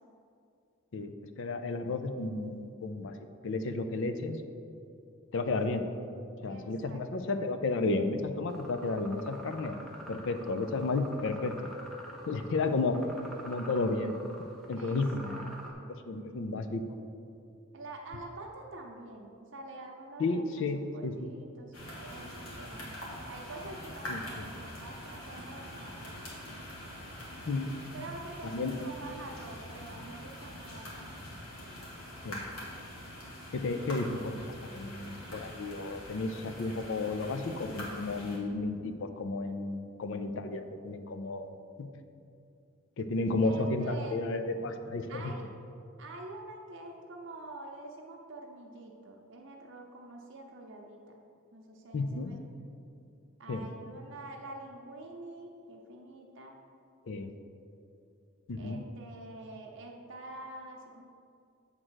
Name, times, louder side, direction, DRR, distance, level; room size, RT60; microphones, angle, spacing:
voice 1, 1.4-3.1 3.4-4.4 5.3-5.8 6.4-9.8 10.1-11.5 12.3-13.0 13.4-14.2 14.7-15.5 15.9-16.8 20.2-21.3 24.1-24.5 27.5-27.7 28.4-28.7 32.2-32.4 33.5-34.4 34.7-41.9 43.0-45.3 51.9-52.3 53.5-53.7 57.1-57.3 58.5-58.8, left 3 dB, 60° left, 8 dB, 0.5 m, -32 dB
voice 2, 6.5-7.0 14.7-15.9 17.7-23.0 23.3-26.1 27.9-31.4 43.4-44.2 45.1-45.5 46.0-51.2 51.5-52.4 53.4-56.6 58.6-61.0, right 2 dB, 60° right, 0 dB, 0.7 m, -46 dB
sound 1, 8.5-15.7, right 1 dB, ahead, 0.8 m, -47 dB
sound 2, 21.7-38.4, equal, 85° left, 1.8 m, -44 dB
7.7 x 3.7 x 6.3 m, 2.6 s
head